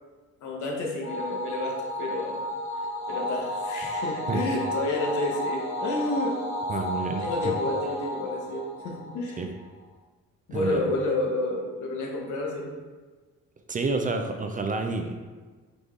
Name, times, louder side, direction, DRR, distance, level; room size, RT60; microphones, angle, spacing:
voice 1, 0.4-2.4 3.1-6.4 7.2-9.4 10.5-12.7, left 2 dB, 75° left, -1 dB, 1.0 m, -30 dB
sound 1, 1.0-9.6, left 1 dB, 60° left, 1.2 m, -32 dB
voice 2, 6.7-7.5 9.4-9.5 10.5-10.8 13.7-15.2, right 3 dB, 30° right, 4 dB, 0.4 m, -29 dB
4.0 x 3.5 x 3.2 m, 1.3 s
cardioid pair, 90°, 30 cm